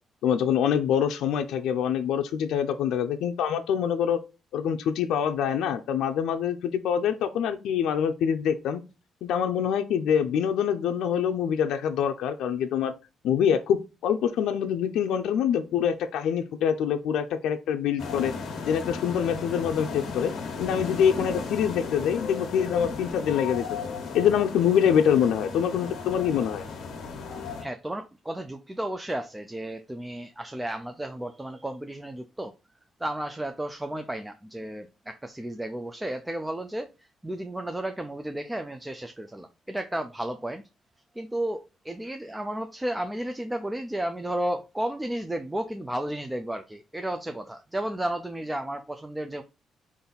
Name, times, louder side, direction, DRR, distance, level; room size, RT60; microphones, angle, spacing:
voice 1, 0.2-4.2 4.5-8.8 9.2-12.9 13.2-18.3 18.7-20.3 20.6-23.7 24.1-26.6, left 8 dB, 85° left, 0.5 m, -25 dB
sound 1, 18.0-27.6, left 4 dB, 55° left, 1.1 m, -35 dB
voice 2, 27.6-32.5 33.0-36.9 37.2-40.6 41.2-49.4, right 1 dB, 5° right, 0.3 m, -33 dB
5.3 x 2.5 x 3.9 m
cardioid pair, 170°, 0 cm